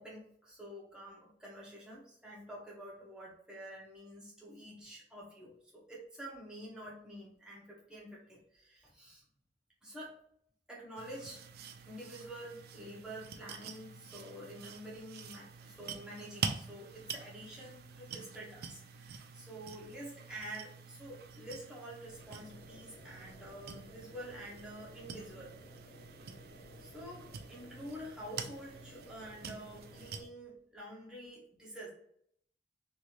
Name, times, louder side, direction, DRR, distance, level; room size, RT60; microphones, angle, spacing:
voice 1, 0.0-9.2 9.8-10.2 10.7-11.5 11.8-25.5 26.8-31.9, right 1 dB, 5° right, -6 dB, 0.8 m, -48 dB
sound 1, 11.0-30.2, right 6 dB, 55° right, 0.4 m, -46 dB
sound 2, 22.0-30.3, left 1 dB, 80° left, 1.1 m, -57 dB
3.1 x 2.9 x 2.5 m, 0.68 s
head